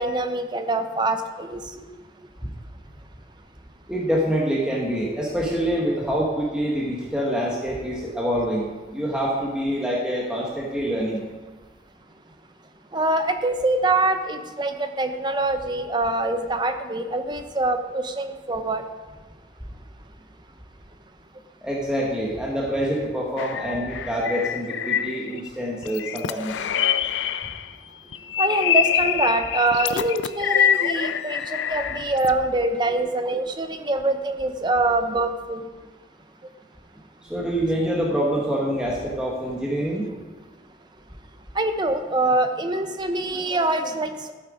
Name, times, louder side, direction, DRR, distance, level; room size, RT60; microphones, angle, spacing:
voice 1, 0.0-1.6 12.9-18.8 28.4-35.7 41.6-44.3, right 2 dB, 25° right, 8 dB, 0.7 m, -24 dB
voice 2, 3.9-8.7 8.9-11.2 21.6-26.6 37.2-40.1, equal, 5° right, -4 dB, 1.2 m, -26 dB
sound 1, 23.4-25.5 25.8-27.7 28.1-32.3, left 9 dB, 90° left, 0.4 m, -25 dB
13.0 x 7.7 x 4.9 m, 1.3 s
head